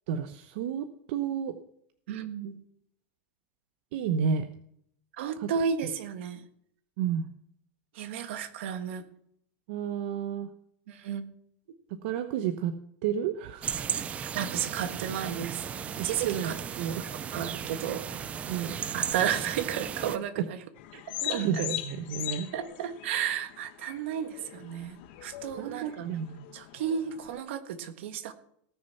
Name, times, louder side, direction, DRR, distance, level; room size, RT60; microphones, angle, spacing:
voice 1, 0.1-1.6 3.9-4.5 5.4-5.5 7.0-7.3 9.7-10.5 11.9-12.7 13.0-13.8 16.0-16.9 18.5-18.9 20.4-20.5 20.9-22.5 25.6-26.5, right 8 dB, 65° right, 8 dB, 0.9 m, -31 dB
voice 2, 2.1-2.6 5.2-6.4 7.9-9.0 10.9-11.2 13.9-14.0 14.3-15.6 16.0-16.6 17.3-18.2 18.9-20.6 21.2-21.6 22.5-26.1 26.5-28.3, right 8 dB, 80° right, 9 dB, 1.6 m, -33 dB
sound 1, 13.6-20.2, right 8 dB, 20° right, 0.5 m, -35 dB
sound 2, 20.8-27.4, left 14 dB, 60° left, 1.3 m, -40 dB
18.0 x 6.5 x 5.8 m, 0.70 s
supercardioid pair, 160°, 6 cm